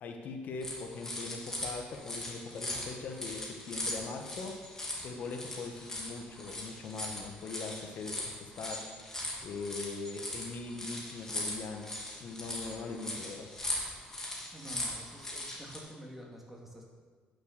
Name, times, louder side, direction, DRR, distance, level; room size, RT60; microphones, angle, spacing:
voice 1, 0.0-4.6 5.0-8.9 9.4-13.5, left 4 dB, 60° left, 3 dB, 1.2 m, -41 dB
sound 1, 0.6-15.8, left 1 dB, 15° left, 2.5 m, -39 dB
voice 2, 14.5-16.8, right 1 dB, 5° right, -2 dB, 2.3 m, -48 dB
10.0 x 6.6 x 6.6 m, 1.5 s
cardioid pair, 105°, 3 cm